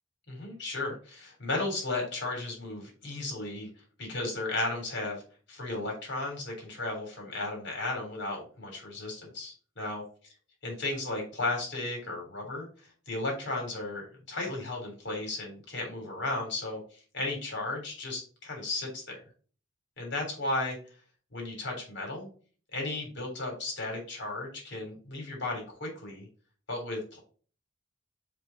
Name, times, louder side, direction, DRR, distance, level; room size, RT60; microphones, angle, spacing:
voice 1, 0.3-3.7 4.0-5.2 5.5-10.0 10.6-12.7 13.1-19.2 20.0-20.8 21.3-22.3 22.7-26.3 26.7-27.2, left 2 dB, 60° left, 1 dB, 3.6 m, -34 dB
6.0 x 5.2 x 4.0 m, 0.39 s
head